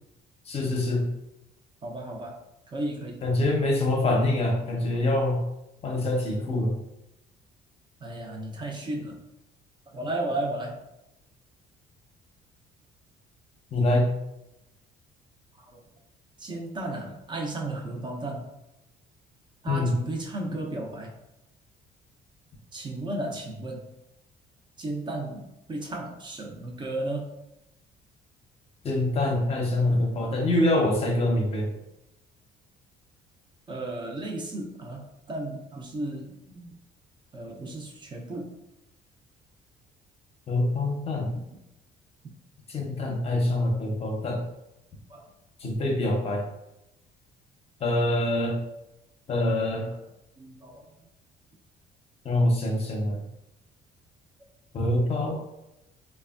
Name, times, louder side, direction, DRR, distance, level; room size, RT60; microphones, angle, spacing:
voice 1, 0.5-1.1 3.2-5.4 5.8-6.7 13.7-14.1 19.7-19.9 28.8-31.7 40.5-41.4 42.7-44.4 45.6-46.4 47.8-48.6 49.3-49.9 52.2-53.2 54.7-55.4, left 1 dB, 35° left, 1 dB, 0.7 m, -25 dB
voice 2, 1.8-2.4 2.7-3.2 8.0-9.2 9.9-10.8 15.6-15.8 16.4-18.5 19.6-21.1 22.7-23.9 24.8-27.3 29.9-30.0 33.7-36.8 37.3-38.6 41.3-41.4 45.1-45.3 45.6-45.9 49.8-50.1 50.4-50.9, right 2 dB, 25° right, 0 dB, 0.6 m, -34 dB
3.2 x 2.2 x 2.4 m, 0.90 s
cardioid pair, 110°, 17 cm